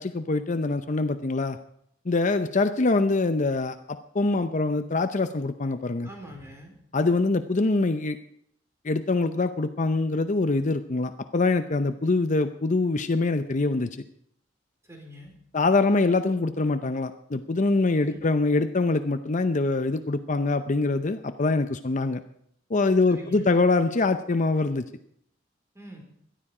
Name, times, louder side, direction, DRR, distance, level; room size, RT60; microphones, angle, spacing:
voice 1, 0.0-1.6 2.1-6.1 6.9-8.2 8.8-14.0 15.5-22.2 22.7-24.8, left 3 dB, 40° left, 9 dB, 0.6 m, -24 dB
voice 2, 6.0-6.7 14.8-15.3 18.1-18.3 23.1-23.5 25.7-26.0, equal, 15° right, 1 dB, 4.1 m, -44 dB
17.5 x 12.5 x 4.9 m, 0.69 s
head